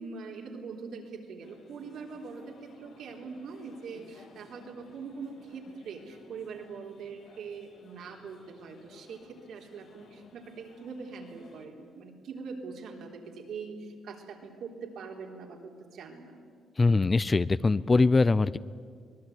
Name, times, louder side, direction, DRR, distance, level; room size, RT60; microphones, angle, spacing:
voice 1, 0.0-16.4, right 5 dB, 75° right, 1 dB, 3.9 m, -43 dB
sound 1, 1.4-11.7, left 4 dB, 70° left, 3.5 m, -57 dB
voice 2, 16.8-18.6, left 3 dB, 25° left, 18 dB, 0.6 m, -22 dB
25.0 x 19.0 x 9.5 m, 2.1 s
cardioid pair, 90°, 0 cm